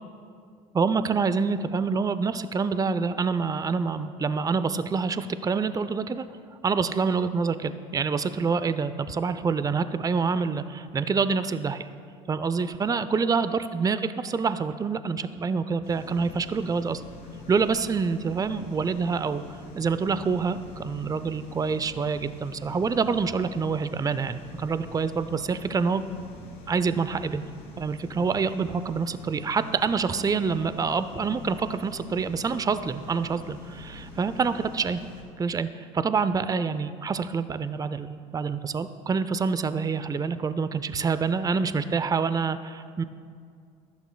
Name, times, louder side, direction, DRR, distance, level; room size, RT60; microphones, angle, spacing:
voice 1, 0.7-6.2 6.6-11.9 12.3-17.0 17.5-26.0 26.7-27.4 27.8-35.0 35.4-43.0, right 5 dB, 20° right, 13 dB, 0.5 m, -27 dB
sound 1, 15.8-35.2, left 3 dB, 75° left, 2.7 m, -45 dB
15.0 x 12.0 x 2.3 m, 2.3 s
hypercardioid pair, 75°, 17 cm